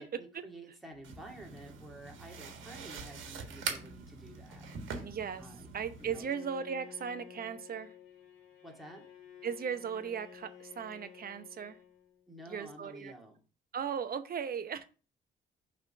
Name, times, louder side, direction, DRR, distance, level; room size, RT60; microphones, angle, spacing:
voice 1, 0.0-4.7 5.4-5.7 6.0-6.3 8.6-9.0 12.3-13.4, right 1 dB, ahead, -1 dB, 2.1 m, -50 dB
sound 1, 1.0-6.2, right 5 dB, 75° right, 1.6 m, -43 dB
voice 2, 5.0-5.5 5.7-8.0 9.4-11.8 12.5-13.1 13.7-14.8, right 7 dB, 50° right, 10 dB, 0.8 m, -37 dB
Bowed string instrument, 6.0-12.3, left 9 dB, 90° left, 1.3 m, -53 dB
5.7 x 3.7 x 5.7 m, 0.35 s
cardioid pair, 90°, 20 cm